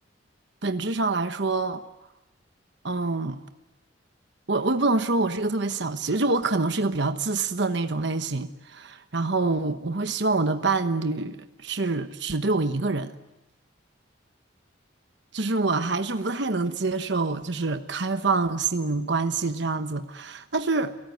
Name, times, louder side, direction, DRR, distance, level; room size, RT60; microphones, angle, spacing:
voice 1, 0.6-1.8 2.8-3.4 4.5-13.1 15.3-21.0, right 3 dB, 60° right, 1.1 m, -26 dB
29.5 x 18.0 x 9.5 m
head